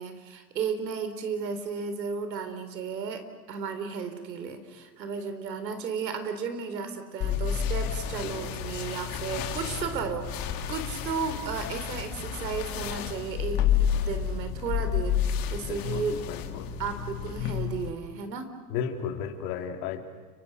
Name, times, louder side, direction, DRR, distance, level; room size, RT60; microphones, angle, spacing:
voice 1, 0.0-13.7 14.0-16.2 16.8-18.5, right 5 dB, 85° right, 8 dB, 3.6 m, -34 dB
sound 1, 7.2-17.9, left 9 dB, 45° left, 2.5 m, -30 dB
voice 2, 15.7-16.7 18.7-20.0, left 7 dB, 65° left, 4 dB, 3.4 m, -34 dB
30.0 x 25.0 x 6.4 m, 1.3 s
hypercardioid pair, 105°, 49 cm